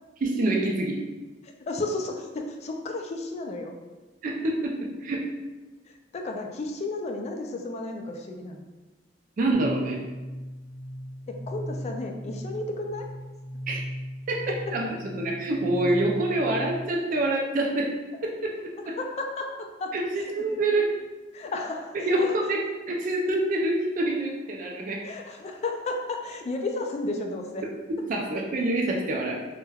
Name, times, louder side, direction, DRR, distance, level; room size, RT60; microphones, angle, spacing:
voice 1, 0.2-1.0 4.2-5.2 9.4-10.0 13.7-13.8 14.3-14.4 14.7-14.9 15.2-17.9 18.2-19.0 19.9-20.9 22.1-22.6 22.9-25.0 27.9-29.4, right 2 dB, 45° right, -1 dB, 0.3 m, -26 dB
voice 2, 1.4-3.7 5.9-8.6 11.3-13.1 19.0-19.9 20.2-20.3 21.3-22.3 25.0-27.6, left 2 dB, 35° left, 3 dB, 0.3 m, -33 dB
sound 1, 9.5-17.1, equal, 80° left, 0.8 m, -37 dB
3.2 x 2.1 x 2.2 m, 1.2 s
head